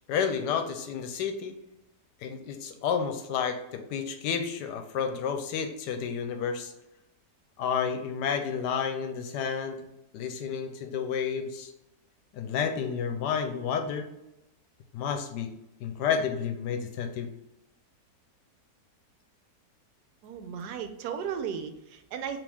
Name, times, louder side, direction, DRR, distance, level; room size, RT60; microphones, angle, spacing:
voice 1, 0.0-1.5 2.2-6.7 7.6-9.8 10.1-11.7 12.3-14.1 14.9-15.5 15.8-17.3, left 7 dB, 85° left, 7 dB, 1.2 m, -30 dB
voice 2, 20.2-22.4, right 7 dB, 75° right, 8 dB, 1.1 m, -35 dB
5.2 x 3.0 x 3.4 m, 0.89 s
omnidirectional pair, 1.8 m